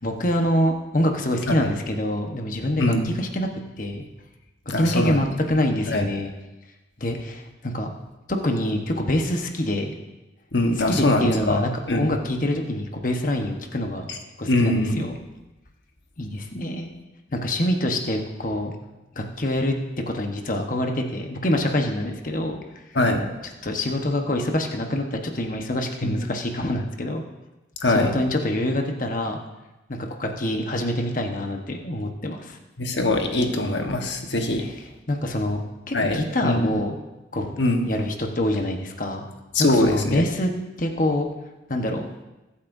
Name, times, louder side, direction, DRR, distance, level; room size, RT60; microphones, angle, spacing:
voice 1, 0.0-3.5 3.8-4.0 4.7-6.3 7.0-7.9 8.3-10.0 10.9-14.1 14.4-15.2 16.2-16.9 17.3-18.7 19.2-19.7 20.1-22.6 23.6-27.2 27.8-29.4 29.9-32.6 34.6-34.7 35.1-35.6 35.9-37.0 37.3-37.6 37.8-39.3 39.7-40.5 40.8-41.3 41.7-42.1, left 1 dB, 45° left, 3 dB, 1.1 m, -25 dB
voice 2, 2.8-3.1 4.7-5.2 5.9-6.1 10.5-11.6 11.9-12.1 14.5-15.0 22.9-23.2 26.0-26.2 27.8-28.1 32.8-34.6 35.9-36.7 37.6-37.9 39.5-40.2, left 1 dB, 70° left, 3 dB, 1.3 m, -22 dB
21.0 x 8.5 x 2.7 m, 1.0 s
head